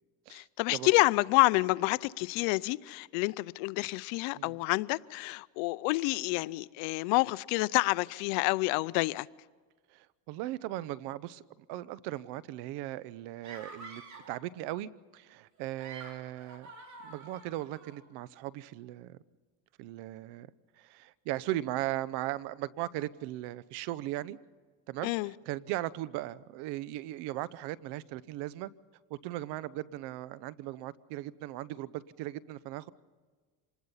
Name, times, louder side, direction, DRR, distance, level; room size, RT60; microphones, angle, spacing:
voice 1, 0.3-9.3 25.0-25.3, left 23 dB, 85° left, 0.6 m, -28 dB
voice 2, 9.9-11.4 11.7-14.0 14.3-16.7 17.0-19.2 19.8-20.5 20.8-24.4 24.9-28.7 29.1-32.9, right 15 dB, 80° right, 0.9 m, -38 dB
sound 1, 13.4-14.4 15.6-18.0, right 3 dB, 45° right, 3.8 m, -48 dB
26.5 x 20.0 x 5.6 m
cardioid pair, 110°, 41 cm